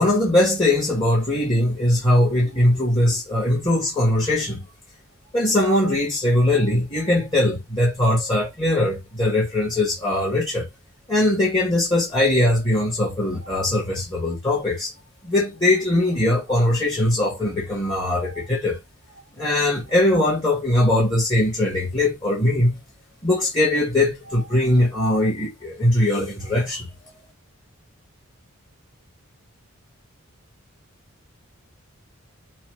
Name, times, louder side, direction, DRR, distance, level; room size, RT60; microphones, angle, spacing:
voice 1, 0.0-4.6 5.3-10.7 11.1-14.9 15.2-18.8 19.4-22.8 23.2-26.9, left 1 dB, 20° left, 1.7 m, -21 dB
6.1 x 2.4 x 3.6 m
head